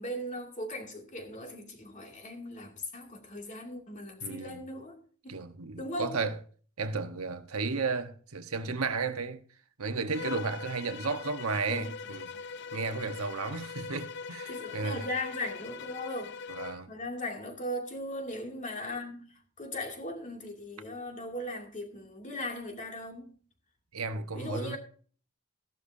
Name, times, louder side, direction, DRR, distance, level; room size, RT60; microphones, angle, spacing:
voice 1, 0.0-5.0 5.2-5.4 5.8-6.2 11.7-11.9 14.5-16.3 16.9-23.3 24.3-24.8, left 1 dB, 35° left, 2.6 m, -38 dB
voice 2, 4.2-4.6 5.3-6.4 6.8-9.4 9.8-12.3 12.7-15.1 16.5-16.9 23.9-24.8, right 4 dB, 85° right, 1.2 m, -33 dB
Bowed string instrument, 10.1-16.9, left 5 dB, 55° left, 0.5 m, -41 dB
15.0 x 11.5 x 2.7 m
head